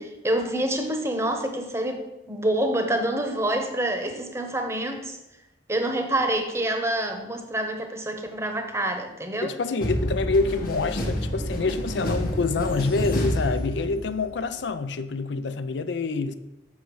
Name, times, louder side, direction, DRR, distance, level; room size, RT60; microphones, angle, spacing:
voice 1, 0.0-5.2 5.7-9.5, right 1 dB, 15° right, 0.9 m, -27 dB
voice 2, 9.4-16.3, left 3 dB, 70° left, 0.5 m, -26 dB
sound 1, 9.8-14.3, equal, 50° left, 1.2 m, -28 dB
7.0 x 6.3 x 4.6 m
head